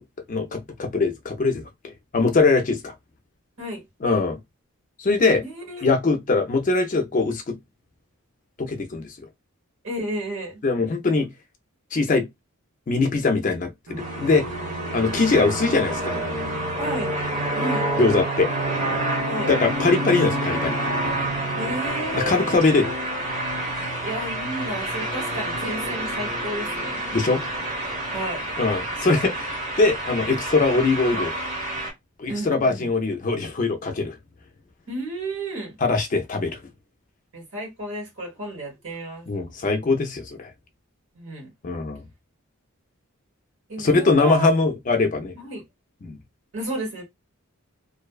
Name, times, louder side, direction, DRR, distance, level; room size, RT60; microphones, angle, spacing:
voice 1, 0.3-1.6 2.1-2.9 4.0-4.4 5.0-5.4 5.8-7.6 8.6-9.1 10.6-11.3 11.9-12.3 12.9-14.5 14.9-16.6 18.0-18.5 19.5-20.8 22.1-22.9 27.1-27.4 28.6-31.3 32.2-34.2 35.8-36.6 39.3-40.5 41.6-42.0 43.8-45.3 46.0-46.2, left 3 dB, 35° left, 0.4 m, -22 dB
voice 2, 5.4-5.9 9.8-10.6 14.3-14.8 16.8-17.1 17.5-17.9 19.3-19.5 21.6-22.6 24.0-27.0 28.1-28.5 32.3-32.9 34.9-35.8 37.3-39.3 41.1-41.5 43.7-44.5 45.3-45.6 46.5-47.0, right 1 dB, 60° right, 1.2 m, -32 dB
Bowed string instrument, 13.9-17.8, left 1 dB, 75° right, 0.5 m, -38 dB
sound 1, 14.0-31.9, right 1 dB, 35° right, 1.0 m, -28 dB
2.5 x 2.1 x 2.3 m
head